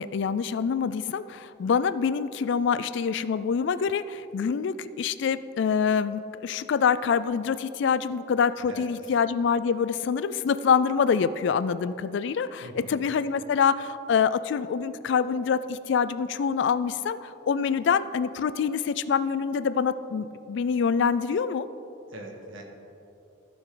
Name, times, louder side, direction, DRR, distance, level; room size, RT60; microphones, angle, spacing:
voice 1, 0.0-21.7, left 6 dB, 60° left, 14 dB, 0.3 m, -25 dB
voice 2, 8.7-9.1 12.6-13.0 22.1-22.6, right 1 dB, 75° right, 0 dB, 1.5 m, -42 dB
14.0 x 6.1 x 3.8 m, 2.8 s
head